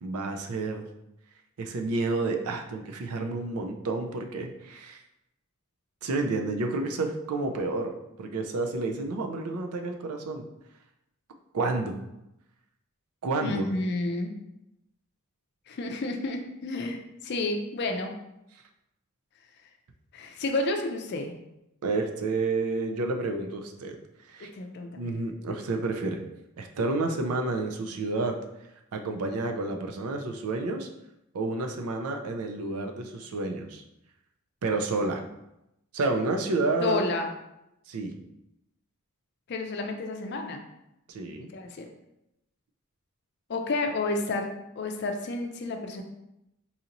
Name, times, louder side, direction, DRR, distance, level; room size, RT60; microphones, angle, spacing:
voice 1, 0.0-0.9 1.6-5.0 6.0-10.5 11.5-12.0 13.2-13.7 21.8-24.0 24.2-24.5 24.9-26.2 26.6-28.4 28.9-30.9 31.3-33.8 34.6-35.2 35.9-37.0 37.9-38.1 41.1-41.5, right 3 dB, 85° right, 4 dB, 0.5 m, -30 dB
voice 2, 13.4-14.3 15.7-18.2 20.1-21.3 24.4-25.1 36.8-37.3 39.5-40.6 41.4-41.9 43.5-46.0, left 2 dB, 50° left, 4 dB, 0.4 m, -31 dB
4.1 x 2.9 x 2.5 m, 0.87 s
head